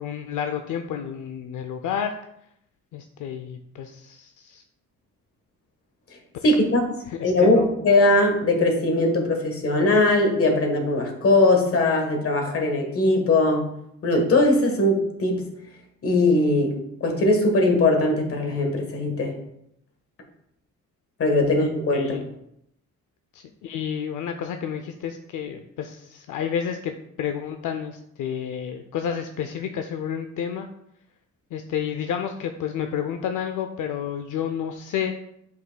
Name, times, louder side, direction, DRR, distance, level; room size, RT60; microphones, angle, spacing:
voice 1, 0.0-2.1 2.9-4.6 6.4-6.7 7.1-7.7 21.9-22.2 23.3-30.7 31.5-35.1, left 8 dB, 80° left, 6 dB, 0.5 m, -30 dB
voice 2, 6.4-6.9 7.2-13.7 14.0-15.5 16.0-19.4 21.2-22.3, left 2 dB, 45° left, 3 dB, 1.3 m, -20 dB
7.6 x 5.6 x 2.2 m, 0.76 s
cardioid pair, 150°, 31 cm